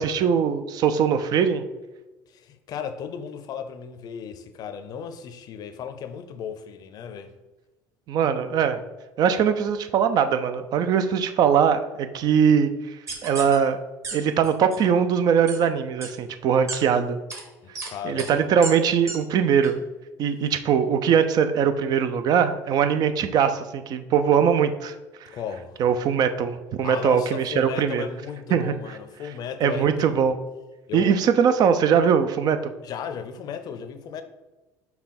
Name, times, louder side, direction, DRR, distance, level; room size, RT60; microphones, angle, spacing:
voice 1, 0.0-1.6 8.1-8.8 9.2-12.7 13.2-13.8 14.1-17.2 18.0-19.8 20.2-24.9 25.8-28.1 28.5-28.7 29.6-30.4 30.9-32.7, right 7 dB, 55° right, 0.5 m, -21 dB
voice 2, 2.3-7.3 17.6-18.4 25.3-25.8 26.8-30.3 30.9-31.2 32.8-34.2, left 7 dB, 55° left, 0.6 m, -35 dB
sound 1, 13.1-13.6 14.0-14.1 14.4-14.8 15.5-15.6 16.0-16.1 16.7-16.8 17.3-17.4 17.8-17.9 18.2-18.3 18.6-18.7 19.1-19.2 19.6-19.7, right 3 dB, 35° right, 1.3 m, -32 dB
5.6 x 2.3 x 4.2 m
supercardioid pair, 85°, 8 cm